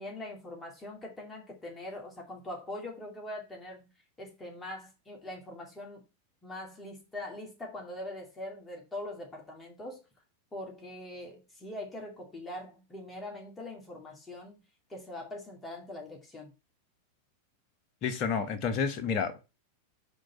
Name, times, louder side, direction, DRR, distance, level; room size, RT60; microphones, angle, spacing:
voice 1, 0.0-3.9 4.2-6.0 6.4-10.0 10.5-14.6 14.9-16.5, left 1 dB, 15° left, 2.2 m, -42 dB
voice 2, 18.0-19.4, left 6 dB, 40° left, 1.2 m, -30 dB
5.1 x 3.7 x 5.6 m
figure-of-eight pair, 90°, 0 cm